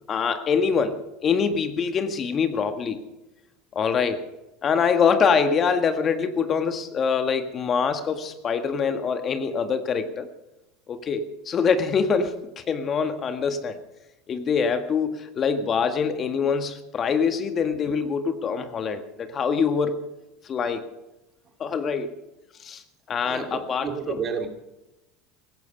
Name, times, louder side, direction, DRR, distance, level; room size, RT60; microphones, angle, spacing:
voice 1, 0.1-3.0 3.7-4.2 4.6-10.3 10.9-13.8 14.3-20.0 20.4-20.8 21.6-22.1 22.6-22.8 23.1-24.2, left 6 dB, 40° left, 8 dB, 1.7 m, -24 dB
voice 2, 23.2-24.5, right 6 dB, 40° right, 5 dB, 2.8 m, -31 dB
17.0 x 15.5 x 5.3 m, 0.97 s
hypercardioid pair, 85°, 0 cm